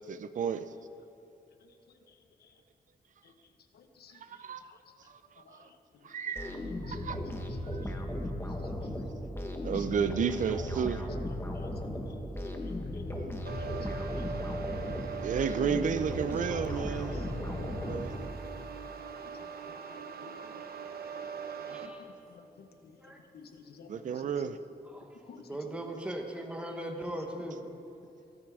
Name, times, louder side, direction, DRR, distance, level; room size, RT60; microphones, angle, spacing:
voice 1, 0.1-0.7 4.2-4.7 5.1-5.7 6.0-6.6 6.8-7.2 7.7-7.8 9.6-11.1 15.2-17.2 17.8-18.2 23.9-24.6, right 7 dB, 55° right, 11 dB, 0.5 m, -32 dB
voice 2, 1.6-2.5 3.2-3.3 3.7-4.8 5.4-5.8 6.9-7.0 7.8-8.0 8.6-8.7 9.0-9.1 9.7-9.9 11.5-11.7 12.1-13.2 13.5-14.3 14.9-15.3 16.4-16.8 17.1-17.6 19.4-19.5 19.9-20.5 21.7-22.0 22.3-23.9 24.1-24.3 25.3-25.8 27.0-27.1 27.4-27.6, left 6 dB, 85° left, 7 dB, 1.1 m, -55 dB
sound 1, 6.4-18.6, left 1 dB, 15° left, 1.2 m, -36 dB
sound 2, 13.5-21.9, right 6 dB, 75° right, 1.1 m, -41 dB
voice 3, 21.7-22.0 23.0-23.2 24.9-25.1 25.4-27.6, right 1 dB, 5° right, 2 dB, 1.2 m, -38 dB
22.5 x 9.5 x 4.9 m, 2.7 s
wide cardioid pair, 170°, 16 cm